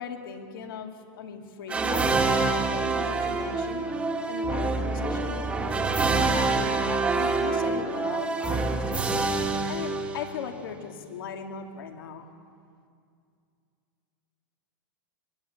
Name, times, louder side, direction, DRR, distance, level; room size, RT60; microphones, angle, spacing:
voice 1, 0.0-3.9 4.3-5.6 6.1-9.3 9.7-12.3, left 7 dB, 75° left, 4 dB, 2.6 m, -38 dB
sound 1, 1.7-10.6, right 3 dB, 10° right, 1.6 m, -26 dB
22.5 x 19.0 x 8.1 m, 2.3 s
supercardioid pair, 165°, 12 cm